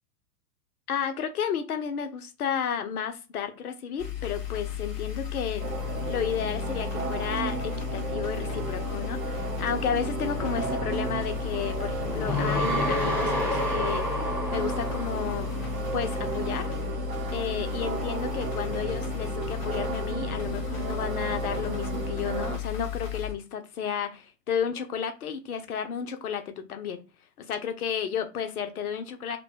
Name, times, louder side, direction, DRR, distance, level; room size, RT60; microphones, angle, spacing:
voice 1, 0.9-5.7 6.1-14.2 14.5-16.8 17.3-27.0 27.4-29.4, left 7 dB, 70° left, 0.7 m, -32 dB
sound 1, 4.0-23.3, left 11 dB, 15° left, 0.4 m, -34 dB
sound 2, 5.6-22.6, right 7 dB, 60° right, 0.5 m, -34 dB
sound 3, 10.4-16.0, equal, 5° right, 0.8 m, -31 dB
2.7 x 2.1 x 2.7 m
figure-of-eight pair, 100°, 47 cm